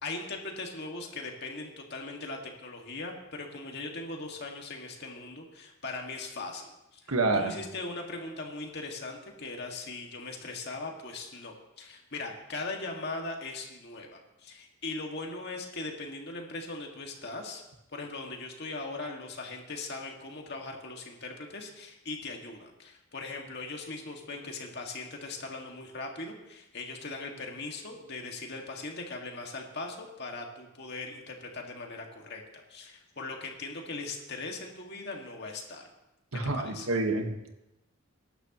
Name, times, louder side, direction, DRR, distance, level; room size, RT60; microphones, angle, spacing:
voice 1, 0.0-17.6 17.9-35.9 36.3-36.9, left 3 dB, 50° left, 1 dB, 2.0 m, -40 dB
voice 2, 7.1-7.5 36.3-37.5, right 3 dB, 80° right, 4 dB, 1.5 m, -28 dB
22.0 x 11.5 x 3.0 m, 0.92 s
head